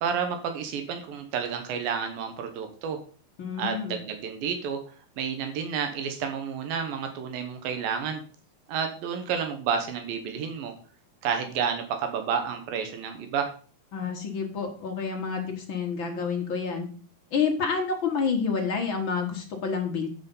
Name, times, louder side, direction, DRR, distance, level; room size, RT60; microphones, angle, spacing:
voice 1, 0.0-3.0 3.6-4.8 5.2-8.2 8.7-10.7 11.2-13.5, right 7 dB, 90° right, 6 dB, 2.8 m, -30 dB
voice 2, 3.4-4.0 13.9-16.9 17.3-20.1, left 5 dB, 55° left, 2 dB, 1.4 m, -28 dB
8.2 x 6.2 x 5.4 m, 0.42 s
omnidirectional pair, 4.0 m